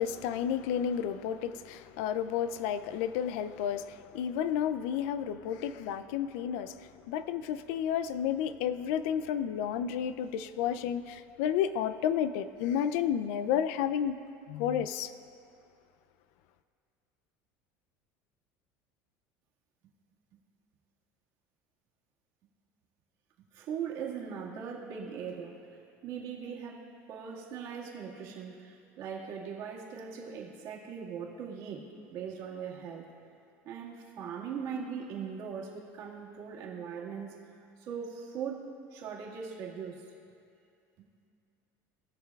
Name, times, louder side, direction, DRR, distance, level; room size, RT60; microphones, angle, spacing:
voice 1, 0.0-14.2 14.5-15.1, left 9 dB, 75° left, 13 dB, 0.4 m, -31 dB
voice 2, 23.5-25.6 26.0-33.1 33.6-37.4 37.8-40.1, right 7 dB, 55° right, -4 dB, 1.8 m, -40 dB
19.0 x 6.6 x 2.3 m, 2.6 s
cardioid pair, 145°, 7 cm